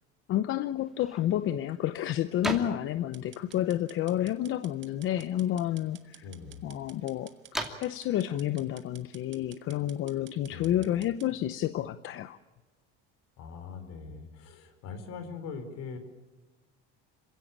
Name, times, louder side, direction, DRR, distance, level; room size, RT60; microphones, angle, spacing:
voice 1, 0.3-6.2 6.6-7.3 7.8-12.4, left 12 dB, 45° left, 13 dB, 0.8 m, -30 dB
sound 1, 0.8-9.9, right 1 dB, ahead, 2.6 m, -43 dB
sound 2, 3.1-11.3, right 10 dB, 40° right, 1.7 m, -54 dB
voice 2, 6.2-6.7 10.5-10.8 13.4-16.0, left 5 dB, 60° left, 9 dB, 4.7 m, -42 dB
26.5 x 16.5 x 8.8 m, 1.2 s
cardioid pair, 130°, 29 cm